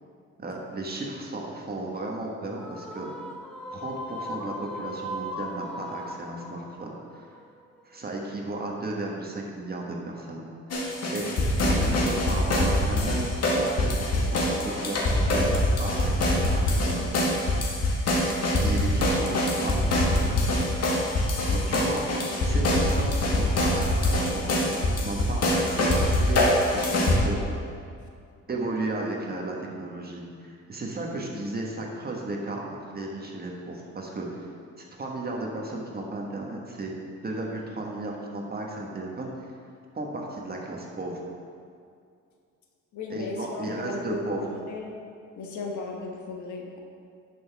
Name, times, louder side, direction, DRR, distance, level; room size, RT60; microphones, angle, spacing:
voice 1, 0.4-3.1 3.7-7.3 7.8-10.4 11.1-13.2 13.6-17.2 18.5-20.7 21.5-22.1 22.4-27.4 28.5-34.5 34.8-36.9 37.2-39.5 39.9-41.2 43.1-44.4, right 2 dB, 30° right, -1 dB, 1.5 m, -34 dB
sound 1, 2.6-8.0, left 1 dB, ahead, 1.2 m, -38 dB
sound 2, 10.7-27.2, left 1 dB, 55° left, 1.7 m, -24 dB
voice 2, 42.9-44.9 45.4-46.8, left 2 dB, 75° left, 1 dB, 1.3 m, -35 dB
10.5 x 6.0 x 3.5 m, 2.3 s
cardioid pair, 90°, 30 cm